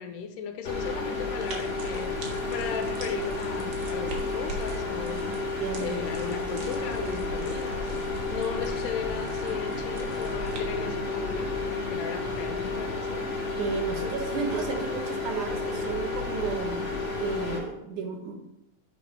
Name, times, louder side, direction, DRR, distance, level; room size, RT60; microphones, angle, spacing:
voice 1, 0.0-5.4 5.8-7.9 8.3-13.3, left 6 dB, 80° left, 6 dB, 2.4 m, -36 dB
sound 1, 0.6-17.6, left 3 dB, 40° left, 2.4 m, -32 dB
sound 2, 1.4-10.6, right 2 dB, 85° right, 3.0 m, -42 dB
sound 3, 2.4-16.0, right 2 dB, 40° right, 1.9 m, -46 dB
voice 2, 5.6-6.0 13.6-18.5, right 5 dB, 70° right, 3 dB, 2.5 m, -33 dB
9.1 x 5.3 x 5.5 m, 0.90 s
omnidirectional pair, 3.8 m